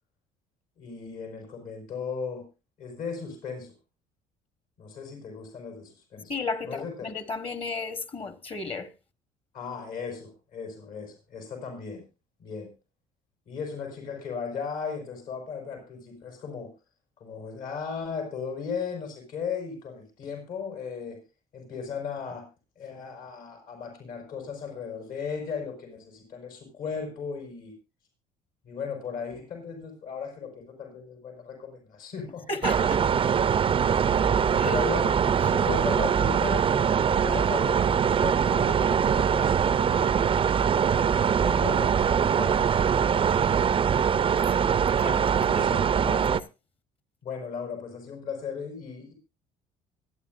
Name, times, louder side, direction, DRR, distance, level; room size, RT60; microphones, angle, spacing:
voice 1, 0.8-2.5 2.8-3.7 4.8-6.3 6.6-7.1 9.5-12.0 12.4-12.7 13.5-16.7 17.2-21.2 21.5-22.5 22.8-27.7 28.6-32.4 34.6-40.2 40.8-42.7 43.1-43.8 45.4-45.9 47.2-49.1, left 6 dB, 65° left, 4.8 m, -37 dB
voice 2, 6.3-8.9 32.5-33.1 34.5-34.8 44.5-44.7 45.0-45.6 46.0-46.4, left 3 dB, 35° left, 1.5 m, -34 dB
sound 1, 32.6-46.4, right 7 dB, 35° right, 0.6 m, -23 dB
24.5 x 9.5 x 2.5 m
supercardioid pair, 80°, 16 cm